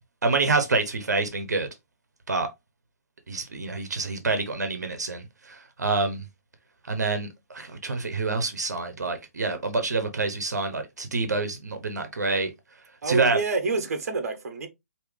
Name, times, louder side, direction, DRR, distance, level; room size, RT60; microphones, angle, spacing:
voice 1, 0.2-1.7 2.3-2.5 3.3-6.2 6.9-7.3 7.5-12.5 13.1-13.4, right 3 dB, 85° right, 1.0 m, -27 dB
voice 2, 13.0-14.7, right 4 dB, 60° right, 1.1 m, -27 dB
4.9 x 2.9 x 3.3 m
hypercardioid pair, 140°, 9 cm